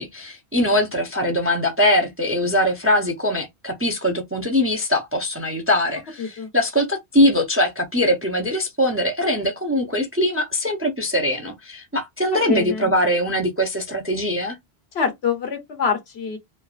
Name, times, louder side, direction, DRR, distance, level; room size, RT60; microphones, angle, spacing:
voice 1, 0.0-14.6, left 1 dB, 20° right, 0.4 m, -22 dB
voice 2, 6.2-6.5 12.5-12.9 14.9-16.4, left 5 dB, 80° left, 1.2 m, -25 dB
3.1 x 2.3 x 2.4 m
omnidirectional pair, 1.1 m